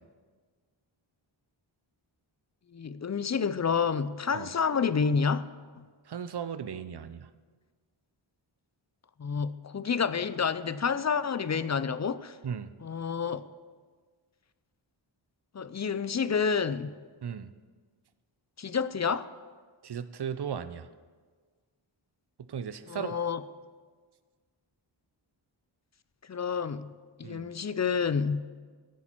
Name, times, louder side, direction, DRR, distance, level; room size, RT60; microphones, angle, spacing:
voice 1, 2.7-5.5 5.8-5.9 9.2-12.4 12.8-13.4 15.5-16.9 18.6-19.3 22.9-23.4 26.3-26.9 27.2-28.4, left 6 dB, 35° left, 14 dB, 0.4 m, -29 dB
voice 2, 6.1-7.3 12.4-12.7 17.2-17.5 19.8-20.9 22.5-23.2 27.2-27.5, right 7 dB, 55° right, 13 dB, 0.6 m, -36 dB
14.0 x 8.2 x 4.5 m, 1.5 s
wide cardioid pair, 65°, 48 cm